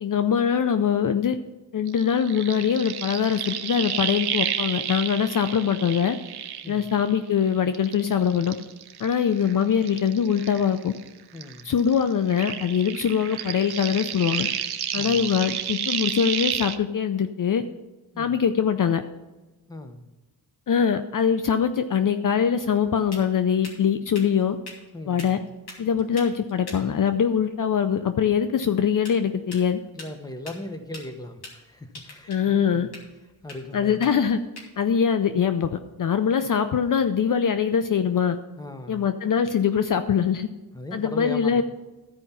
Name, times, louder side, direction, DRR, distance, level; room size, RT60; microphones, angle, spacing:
voice 1, 0.0-1.4 1.7-6.2 6.7-8.6 9.0-10.9 11.6-14.5 14.9-17.6 18.2-19.0 20.7-24.6 25.1-25.4 25.8-29.8 32.3-32.9 33.7-34.4 34.8-35.7 36.0-38.4 38.9-40.5 40.9-41.6, left 7 dB, 50° left, 9 dB, 0.6 m, -23 dB
sound 1, 1.9-7.4 7.7-11.1 11.4-16.8, right 9 dB, 70° right, 0.8 m, -31 dB
voice 2, 11.3-11.7 14.9-15.4 18.1-18.4 19.7-20.0 24.9-25.4 29.9-32.9 33.4-34.1 38.6-39.0 40.7-41.6, left 1 dB, 10° left, 7 dB, 1.1 m, -38 dB
sound 2, 22.7-36.5, left 2 dB, 70° left, 2.9 m, -47 dB
13.5 x 5.2 x 5.7 m, 1.1 s
cardioid pair, 95°, 40 cm